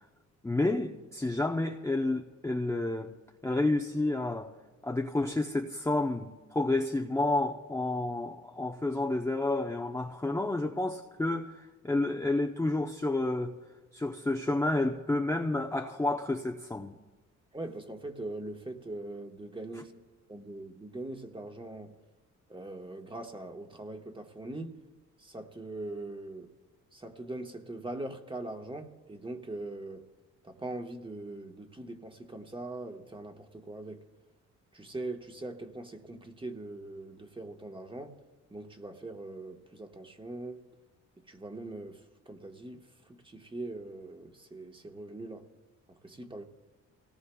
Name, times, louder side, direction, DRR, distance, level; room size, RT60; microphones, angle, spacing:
voice 1, 0.4-3.1 3.4-4.5 4.8-13.5 13.9-17.0, left 2 dB, 10° left, 0.7 m, -30 dB
voice 2, 17.5-19.9 20.3-22.0 22.5-24.8 25.2-26.5 26.9-30.0 30.4-34.0 34.7-38.2 38.5-40.6 41.2-45.5 45.9-46.5, right 2 dB, 15° right, 1.3 m, -41 dB
27.5 x 18.0 x 2.3 m
cardioid pair, 90°, 30 cm